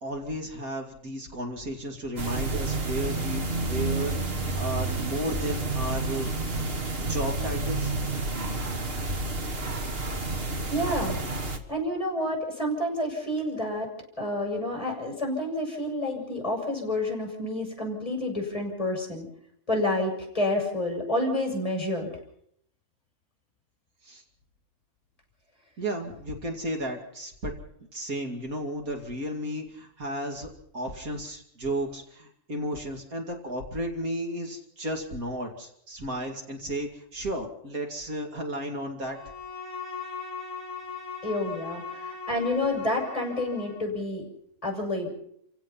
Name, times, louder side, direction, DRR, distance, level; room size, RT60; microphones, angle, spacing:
voice 1, 0.0-6.3 7.1-7.9 24.0-24.2 25.8-27.5 27.9-39.2, right 1 dB, 75° right, 2 dB, 3.1 m, -33 dB
sound 1, 2.2-11.6, right 2 dB, 45° right, 1.9 m, -30 dB
voice 2, 10.7-11.2 11.7-13.9 14.2-19.3 19.7-22.1 41.2-44.3 44.6-45.1, left 1 dB, 25° left, 0 dB, 7.1 m, -29 dB
Bowed string instrument, 39.1-43.9, left 5 dB, 15° right, 4.1 m, -39 dB
29.0 x 16.5 x 5.8 m, 0.71 s
omnidirectional pair, 1.5 m